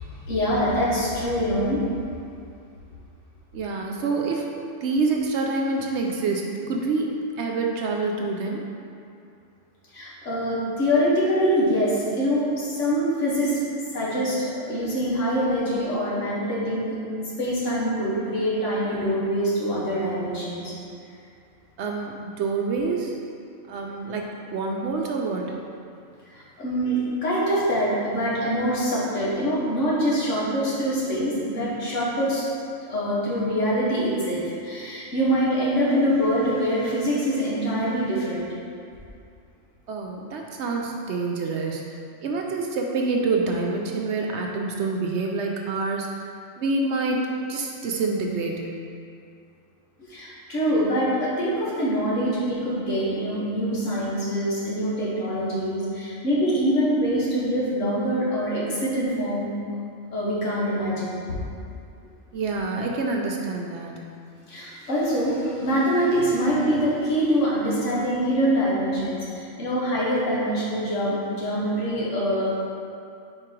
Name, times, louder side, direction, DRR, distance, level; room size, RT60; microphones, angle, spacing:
voice 1, 0.0-1.9 9.9-13.6 13.9-20.8 26.3-32.4 32.9-38.5 50.0-59.5 60.1-61.4 64.5-72.5, equal, 65° left, -7 dB, 1.7 m, -24 dB
voice 2, 3.5-4.5 4.8-8.7 21.8-23.2 23.7-24.3 24.5-25.5 39.9-41.8 42.2-46.1 46.6-48.7 62.3-64.1, right 3 dB, 65° right, 0 dB, 0.8 m, -27 dB
4.9 x 4.6 x 4.4 m, 2.4 s
omnidirectional pair, 1.4 m